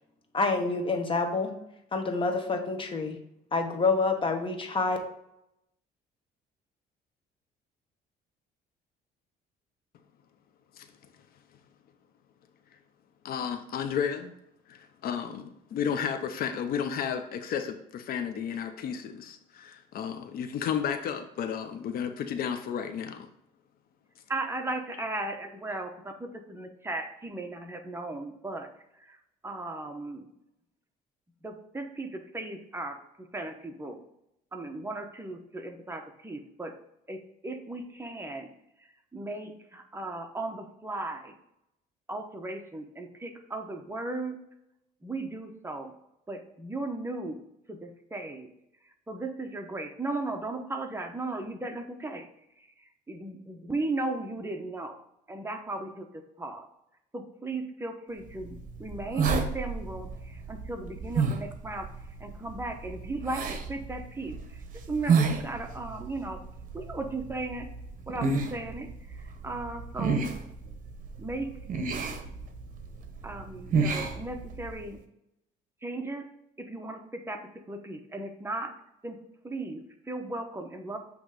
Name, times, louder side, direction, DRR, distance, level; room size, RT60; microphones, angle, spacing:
voice 1, 0.3-1.5 1.9-3.2 3.5-5.0, left 3 dB, 30° left, 5 dB, 1.2 m, -27 dB
voice 2, 13.2-14.3 14.7-23.3, left 7 dB, 60° left, 7 dB, 0.7 m, -32 dB
voice 3, 24.3-28.7 28.9-29.2 29.4-30.3 31.4-34.0 34.5-36.7 37.1-37.2 37.4-38.5 39.1-41.3 42.1-44.4 45.0-45.9 46.3-47.4 47.7-48.5 48.8-52.3 52.6-55.0 55.3-56.7 57.1-61.9 62.2-66.4 66.7-67.7 68.1-70.3 71.2-71.5 73.2-75.0 75.8-76.3 76.6-77.4 77.7-78.7 79.0-79.2 79.4-81.0, right 2 dB, 15° right, 4 dB, 0.8 m, -36 dB
sound 1, 58.3-74.9, right 4 dB, 55° right, 0.9 m, -32 dB
7.8 x 3.1 x 5.0 m, 0.80 s
cardioid pair, 110°, 17 cm